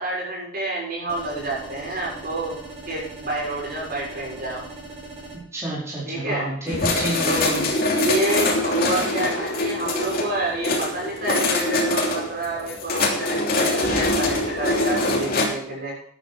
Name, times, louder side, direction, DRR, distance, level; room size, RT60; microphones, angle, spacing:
voice 1, 0.0-2.6 2.9-4.6 6.1-6.5 7.2-7.5 7.9-16.0, right 2 dB, 50° right, -3 dB, 6.3 m, -28 dB
sound 1, 1.1-5.4, right 2 dB, 35° right, 6.2 m, -40 dB
voice 2, 5.5-7.6, right 1 dB, 15° right, -7 dB, 4.5 m, -29 dB
sound 2, 6.7-15.5, left 2 dB, 50° left, 3.0 m, -23 dB
13.0 x 10.0 x 4.9 m, 0.64 s
head